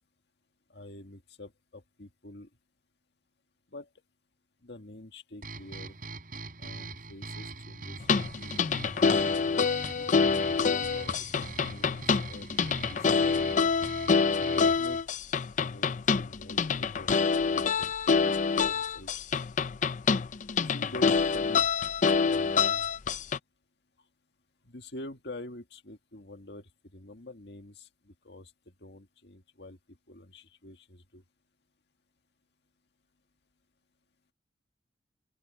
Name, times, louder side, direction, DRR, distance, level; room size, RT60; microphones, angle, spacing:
voice 1, 0.7-2.5 3.7-3.9 4.6-6.0 6.6-8.6 9.6-13.5 14.6-15.0 15.6-18.4 18.7-19.2 20.6-21.7 22.2-22.9 24.6-27.9 28.2-28.5 28.8-29.8 30.1-31.2, left 1 dB, 65° left, 2.0 m, -47 dB
sound 1, 5.4-15.0, right 3 dB, 50° right, 5.5 m, -42 dB
sound 2, 8.0-23.4, left 5 dB, 45° left, 0.5 m, -26 dB
open air
head